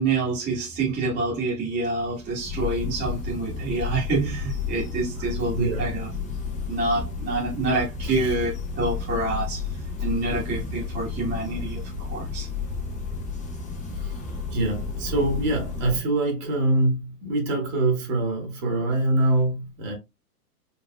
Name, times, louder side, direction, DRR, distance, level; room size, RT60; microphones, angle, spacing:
voice 1, 0.0-6.1 6.7-9.6 10.0-11.8 12.1-12.5, right 3 dB, 20° right, 1.5 m, -27 dB
sound 1, 1.9-16.0, left 5 dB, 15° left, 0.9 m, -32 dB
voice 2, 5.5-5.9 8.0-8.3 14.0-14.1 14.5-19.9, right 2 dB, 40° right, 1.7 m, -24 dB
4.3 x 3.3 x 2.3 m
hypercardioid pair, 115°, 49 cm